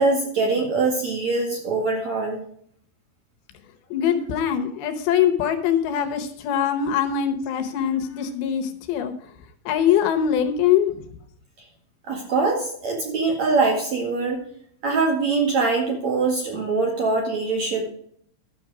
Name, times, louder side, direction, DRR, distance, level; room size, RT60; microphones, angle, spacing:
voice 1, 0.0-2.4 12.1-14.4 14.8-17.9, right 3 dB, 50° right, 0 dB, 2.5 m, -23 dB
voice 2, 3.9-9.1 9.7-11.0, left 9 dB, 75° left, 6 dB, 3.0 m, -22 dB
12.0 x 7.0 x 4.8 m, 0.62 s
omnidirectional pair, 5.3 m